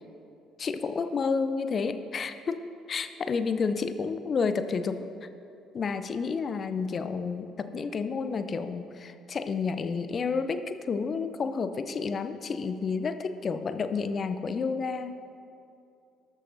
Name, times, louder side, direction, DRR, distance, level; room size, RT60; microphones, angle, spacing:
voice 1, 0.6-2.6 2.9-5.0 5.7-15.2, left 5 dB, 45° left, 11 dB, 0.6 m, -30 dB
13.0 x 12.0 x 2.7 m, 2.6 s
hypercardioid pair, 55°, 0 cm